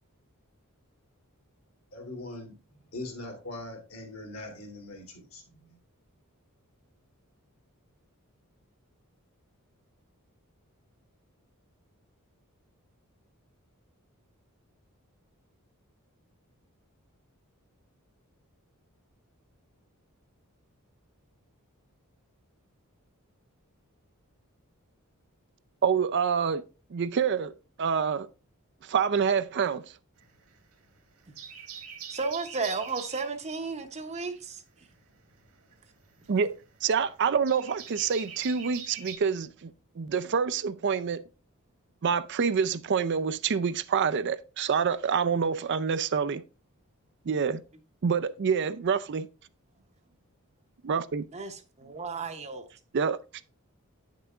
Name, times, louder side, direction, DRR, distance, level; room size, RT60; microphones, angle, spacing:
voice 1, 1.9-5.8, left 2 dB, 65° left, 2.7 m, -42 dB
voice 2, 25.8-26.6 26.9-27.5 27.8-28.3 28.8-29.8 36.3-36.5 36.8-41.2 42.0-46.4 47.3-47.6 48.0-49.3 50.8-51.3 52.9-53.2, right 6 dB, 50° right, 0.4 m, -27 dB
sound 1, 30.2-30.9 31.2-33.3 35.0-39.2, right 7 dB, 80° right, 1.8 m, -43 dB
voice 3, 32.1-34.6 51.3-52.7, right 4 dB, 30° right, 0.8 m, -33 dB
9.1 x 6.6 x 2.4 m
head